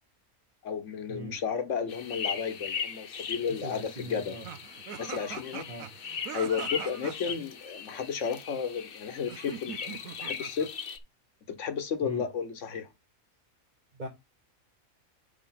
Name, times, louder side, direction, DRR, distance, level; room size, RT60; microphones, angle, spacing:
voice 1, 0.6-4.4 4.9-5.6 6.3-10.7 11.6-12.9, left 6 dB, 65° left, 1.4 m, -33 dB
sound 1, 1.9-11.0, left 6 dB, 50° left, 0.9 m, -39 dB
voice 2, 3.6-4.5 5.7-5.9 12.0-12.2 13.9-14.1, right 1 dB, 35° right, 1.1 m, -40 dB
sound 2, 4.5-7.4 9.3-10.7, right 9 dB, 90° right, 1.1 m, -42 dB
5.1 x 5.0 x 5.8 m
omnidirectional pair, 1.4 m